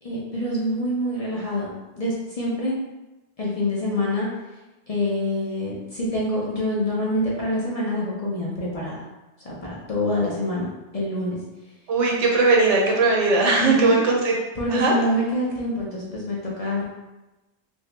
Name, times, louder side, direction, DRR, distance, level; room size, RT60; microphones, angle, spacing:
voice 1, 0.0-2.8 3.4-4.3 4.9-9.0 9.4-11.4 13.6-14.0 14.5-16.8, left 1 dB, 45° left, -5 dB, 0.5 m, -26 dB
voice 2, 11.9-14.3 14.7-14.9, right 3 dB, 90° right, -1 dB, 1.0 m, -19 dB
2.8 x 2.6 x 3.2 m, 1.1 s
omnidirectional pair, 1.2 m